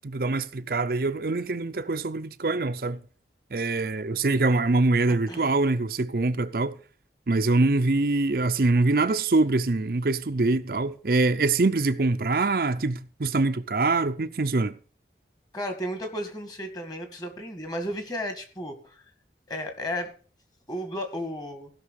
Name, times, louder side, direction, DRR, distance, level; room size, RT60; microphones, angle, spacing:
voice 1, 0.0-3.0 3.5-6.7 7.3-14.8, right 3 dB, 55° right, 0.6 m, -24 dB
voice 2, 5.1-5.6 15.5-19.0 19.5-20.1 20.7-21.7, equal, 20° left, 2.1 m, -34 dB
15.5 x 6.1 x 6.4 m
head